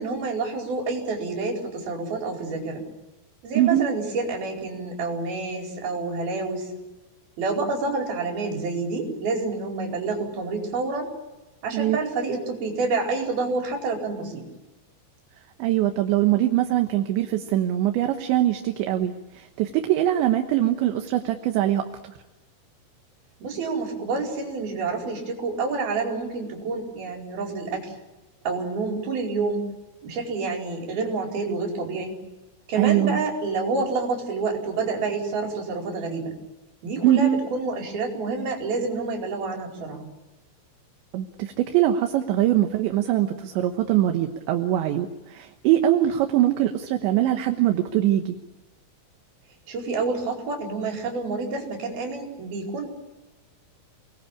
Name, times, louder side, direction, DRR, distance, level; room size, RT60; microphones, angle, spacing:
voice 1, 0.0-2.8 3.4-6.7 7.4-11.1 11.6-14.4 23.4-27.9 28.4-29.7 30.0-32.1 32.7-36.3 36.8-40.1 49.7-52.9, right 3 dB, 50° right, 1 dB, 6.4 m, -28 dB
voice 2, 3.5-3.9 11.7-12.0 15.6-21.9 32.8-33.2 37.0-37.4 41.1-48.3, right 12 dB, 75° right, 5 dB, 3.4 m, -22 dB
29.0 x 21.0 x 8.6 m, 1.1 s
omnidirectional pair, 5.6 m